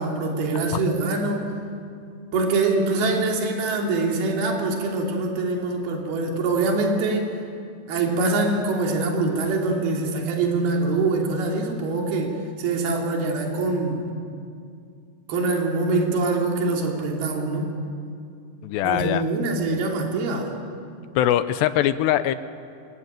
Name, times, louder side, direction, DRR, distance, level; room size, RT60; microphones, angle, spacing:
voice 1, 0.0-1.5 2.3-7.3 7.9-14.0 15.3-17.7 18.8-20.6, right 3 dB, 55° right, 0 dB, 4.8 m, -24 dB
voice 2, 18.6-19.2 21.2-22.3, left 12 dB, 80° left, 11 dB, 2.7 m, -21 dB
27.0 x 23.0 x 9.2 m, 2.3 s
omnidirectional pair, 5.4 m